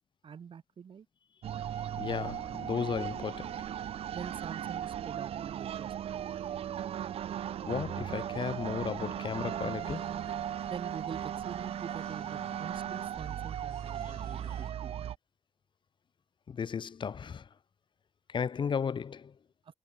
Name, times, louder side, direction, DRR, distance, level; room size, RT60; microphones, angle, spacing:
voice 1, 0.2-1.1 4.1-6.3 10.7-14.9, right 7 dB, 60° right, 2.0 m, -45 dB
sound 1, 1.4-15.2, right 10 dB, 80° right, 0.7 m, -37 dB
voice 2, 2.0-3.6 7.6-10.2 14.0-14.1 16.5-17.5 18.3-19.3, left 6 dB, 55° left, 1.0 m, -35 dB
sound 2, 9.7-14.7, left 1 dB, 10° left, 2.4 m, -54 dB
cardioid pair, 80°, 10 cm